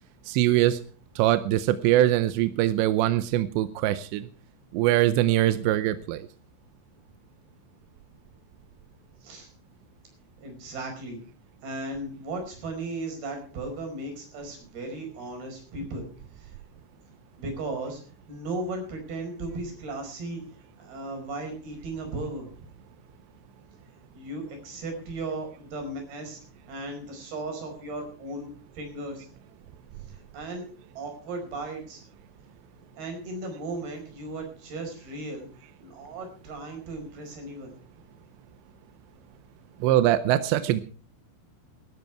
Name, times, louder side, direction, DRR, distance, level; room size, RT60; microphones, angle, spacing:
voice 1, 0.3-0.8 1.2-4.3 4.7-6.3 39.8-40.8, right 14 dB, 80° right, 12 dB, 2.6 m, -22 dB
voice 2, 10.4-11.2 11.6-16.1 16.4-16.5 17.4-18.0 18.3-20.4 20.8-22.7 24.1-26.4 26.7-28.5 28.7-29.3 30.1-30.7 30.9-32.0 33.0-37.7, right 2 dB, 50° right, 4 dB, 6.7 m, -36 dB
18.5 x 12.5 x 4.6 m, 0.40 s
omnidirectional pair, 5.8 m